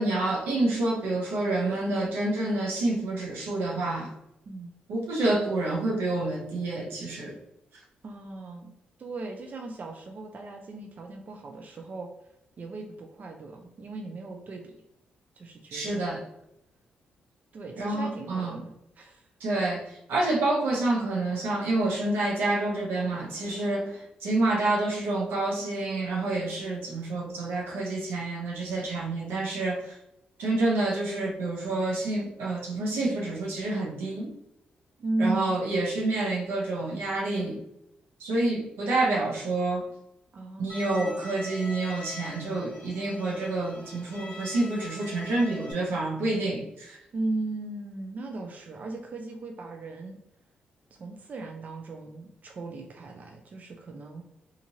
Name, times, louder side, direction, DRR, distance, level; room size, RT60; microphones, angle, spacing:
voice 1, 0.0-4.1 4.9-7.4 15.7-16.2 17.8-18.6 19.4-30.0 30.4-34.3 35.2-37.6 38.2-39.9 40.6-47.0, right 2 dB, 90° right, -2 dB, 0.7 m, -28 dB
voice 2, 8.0-8.7 9.0-12.1 12.6-14.7 15.4-16.1 17.5-19.3 35.0-35.6 40.3-40.9 47.1-50.2 50.9-54.2, right 2 dB, 50° right, 3 dB, 0.4 m, -36 dB
Bowed string instrument, 40.7-45.7, left 2 dB, 30° left, 1.1 m, -43 dB
2.9 x 2.5 x 2.7 m, 0.82 s
cardioid pair, 75°, 4 cm